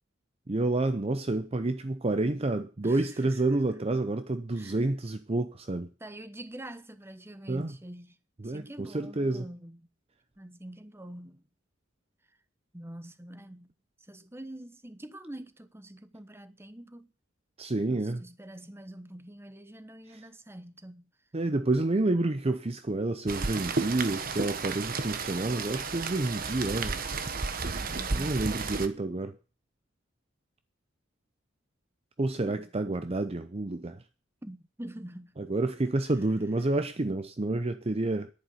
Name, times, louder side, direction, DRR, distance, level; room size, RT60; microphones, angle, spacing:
voice 1, 0.5-5.9 7.5-7.7 8.4-9.5 17.6-18.2 21.3-27.0 28.1-29.3 32.2-34.0 35.4-38.3, right 2 dB, 30° right, 0.6 m, -29 dB
voice 2, 2.8-3.4 4.5-4.8 6.0-8.2 8.4-9.9 10.4-11.4 12.7-13.7 14.0-17.1 17.8-21.1 27.8-28.4 32.4-32.7 34.4-35.3 35.8-35.9, right 1 dB, 10° right, 1.0 m, -45 dB
Rain, 23.3-28.9, right 4 dB, 50° right, 1.2 m, -33 dB
11.0 x 9.9 x 7.8 m
head